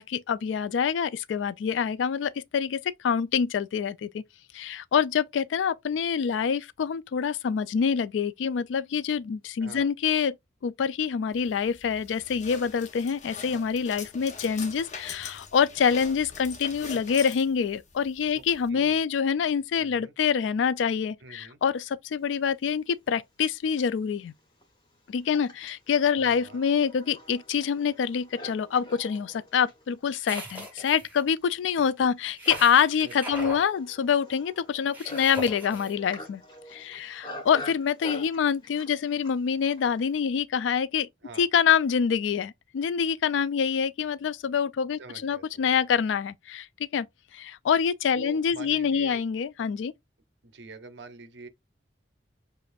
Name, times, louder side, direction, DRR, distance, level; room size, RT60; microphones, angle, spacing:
voice 1, 0.0-4.2 4.5-10.3 10.6-24.3 25.1-36.4 36.7-41.1 41.4-47.1 47.3-49.9, left 7 dB, 80° left, 0.3 m, -26 dB
voice 2, 9.6-9.9 18.3-18.4 18.7-19.1 19.8-20.1 21.2-21.6 26.2-26.6 33.0-33.4 41.2-41.5 45.0-45.7 48.1-49.2 50.4-51.5, right 3 dB, 65° right, 0.7 m, -46 dB
sound 1, 11.3-18.7, left 5 dB, 40° left, 0.8 m, -43 dB
Livestock farm animals working animals, 23.3-23.4 24.2-40.1, left 1 dB, 25° left, 1.3 m, -46 dB
sound 2, 30.2-31.2 32.4-33.6 34.9-35.9, equal, 10° right, 2.2 m, -38 dB
6.7 x 2.5 x 2.5 m
head